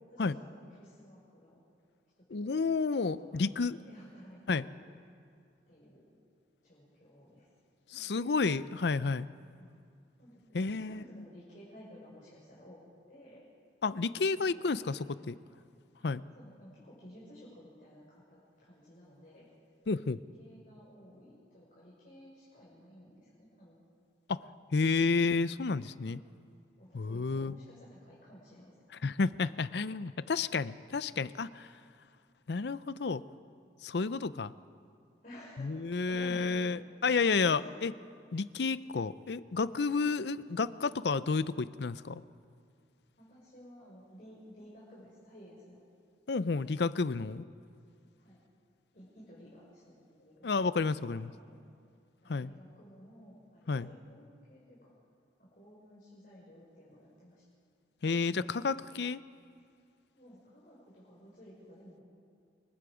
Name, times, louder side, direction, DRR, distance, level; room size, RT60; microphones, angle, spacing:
voice 1, 0.0-1.6 2.2-2.8 3.0-4.8 5.7-6.1 6.6-7.5 7.9-8.4 9.6-9.8 10.2-12.8 13.1-13.4 14.3-15.3 16.0-16.1 16.4-19.5 20.4-23.8 26.0-26.2 26.8-28.7 29.4-29.6 35.2-37.8 43.2-45.8 48.2-48.4 48.9-50.5 50.9-51.7 52.2-54.9 55.4-57.4 60.2-62.0, equal, 45° left, -6 dB, 5.5 m, -54 dB
voice 2, 2.3-3.8 4.5-4.6 7.9-9.3 10.5-11.2 13.8-15.3 16.0-16.2 19.9-20.2 24.3-24.4 24.7-26.2 26.9-27.5 29.0-31.7 32.5-33.2 33.8-34.5 35.6-37.9 38.3-42.2 46.3-47.4 50.4-51.3 52.3-52.5 53.7-53.9 58.0-59.2, left 4 dB, 65° left, 16 dB, 0.5 m, -31 dB
28.0 x 22.0 x 5.0 m, 2.3 s
head